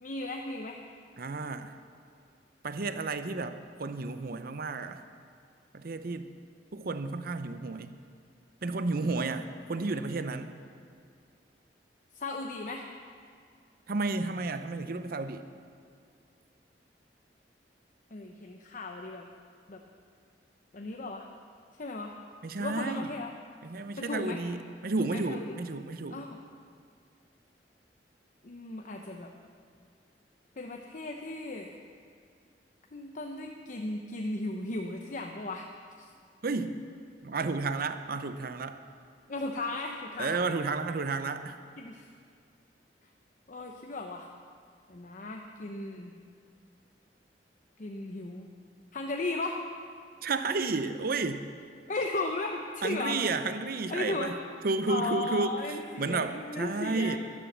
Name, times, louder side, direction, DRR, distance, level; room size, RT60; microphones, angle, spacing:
voice 1, 0.0-0.8 9.8-10.0 12.1-12.9 18.1-19.3 19.7-19.8 20.7-21.3 21.8-22.2 22.6-23.3 24.0-24.4 25.0-25.6 26.1-26.4 28.4-29.3 30.6-31.8 32.9-35.7 36.0-36.1 39.3-40.4 41.8-42.1 43.5-44.3 44.9-46.1 47.8-48.5 48.9-49.6 51.9-53.2 53.9-54.3 54.9-57.2, left 2 dB, 50° left, 2 dB, 0.8 m, -36 dB
voice 2, 1.2-1.7 2.6-5.0 5.7-6.3 6.7-7.9 8.6-10.5 13.9-15.5 22.4-23.1 23.6-26.2 36.4-36.8 37.2-38.8 40.2-41.6 50.2-51.5 52.8-54.3 54.6-55.5 56.0-57.2, right 3 dB, 60° right, 10 dB, 0.7 m, -32 dB
12.0 x 11.0 x 7.3 m, 2.3 s
head